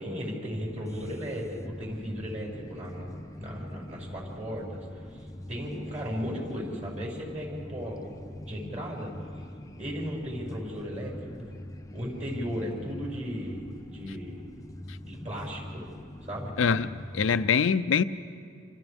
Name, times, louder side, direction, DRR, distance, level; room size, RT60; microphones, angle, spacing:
voice 1, 0.0-8.1 8.4-9.1 9.8-11.5 11.9-13.6 13.9-14.4 15.0-15.8 16.2-16.5, equal, 40° right, 6.4 m, -36 dB
sound 1, 0.5-17.5, left 1 dB, 15° left, 0.5 m, -43 dB
voice 2, 16.6-18.0, left 6 dB, 80° left, 0.5 m, -24 dB
29.0 x 28.0 x 3.6 m
head